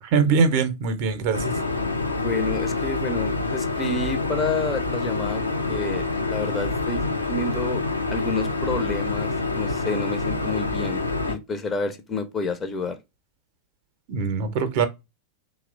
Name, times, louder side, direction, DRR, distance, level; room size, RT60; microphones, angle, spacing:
voice 1, 0.0-1.5 14.1-14.9, right 5 dB, 45° right, 0.5 m, -22 dB
sound 1, 1.3-11.3, left 3 dB, 80° left, 0.4 m, -27 dB
voice 2, 2.1-5.4 5.7-7.8 8.1-11.0 11.3-13.0, left 3 dB, 20° left, 0.4 m, -29 dB
2.9 x 2.0 x 2.3 m
figure-of-eight pair, 90°, 0 cm